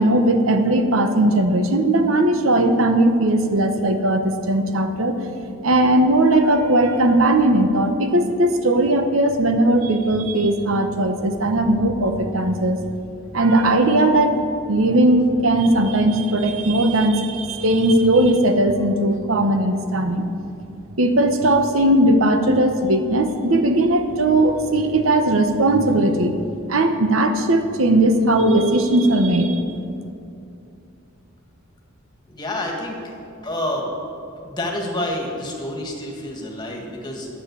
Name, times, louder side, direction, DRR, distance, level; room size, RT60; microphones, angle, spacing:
voice 1, 0.0-5.2 5.6-12.8 13.3-14.3 14.7-20.3 21.0-26.3 26.7-29.6, right 1 dB, 80° right, 7 dB, 1.0 m, -18 dB
voice 2, 32.3-33.1 33.4-33.9 34.4-37.3, left 1 dB, 20° left, 0 dB, 1.9 m, -28 dB
10.0 x 7.4 x 8.3 m, 2.6 s
head